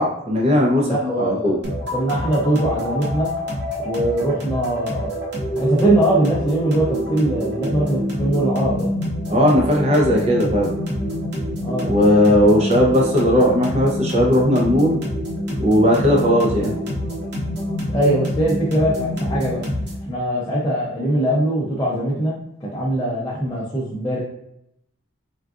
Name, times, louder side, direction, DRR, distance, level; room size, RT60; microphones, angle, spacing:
voice 1, 0.0-0.9 1.2-1.6 9.3-10.7 11.9-15.0 15.6-16.7, equal, 30° right, -1 dB, 0.6 m, -17 dB
voice 2, 0.8-1.6 1.9-3.3 3.8-5.1 5.6-8.9 11.6-11.9 17.9-19.6 20.0-22.3 22.6-24.2, right 1 dB, 15° left, -7 dB, 0.5 m, -21 dB
sound 1, 1.6-20.1, equal, 55° right, 0.9 m, -26 dB
3.7 x 2.3 x 2.4 m, 0.78 s
head